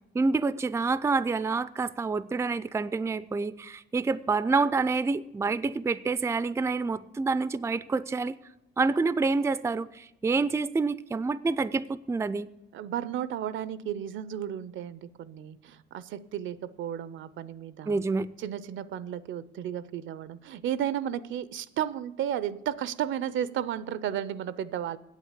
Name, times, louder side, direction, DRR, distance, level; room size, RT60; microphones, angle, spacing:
voice 1, 0.1-8.4 8.8-12.5 17.9-18.3, right 4 dB, 15° right, 0.4 m, -27 dB
voice 2, 12.7-18.0 18.4-25.0, right 10 dB, 75° right, 0.6 m, -33 dB
8.3 x 8.1 x 8.0 m
cardioid pair, 90°, 20 cm